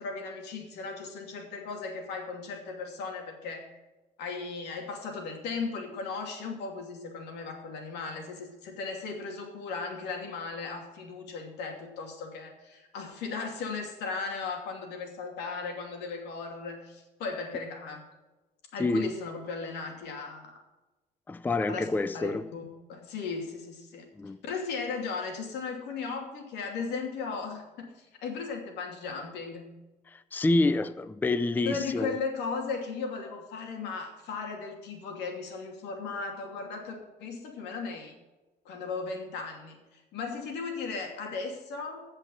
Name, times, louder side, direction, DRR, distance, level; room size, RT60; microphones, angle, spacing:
voice 1, 0.0-3.7 4.2-18.1 18.7-20.6 21.7-21.9 22.1-22.6 22.9-24.1 24.5-29.7 31.7-38.1 38.6-42.1, left 4 dB, 85° left, 2 dB, 2.8 m, -36 dB
voice 2, 18.8-19.1 21.3-22.5 24.2-24.4 30.1-32.2, left 2 dB, 10° left, 14 dB, 0.4 m, -27 dB
16.5 x 5.5 x 6.4 m, 1.1 s
cardioid pair, 110°, 17 cm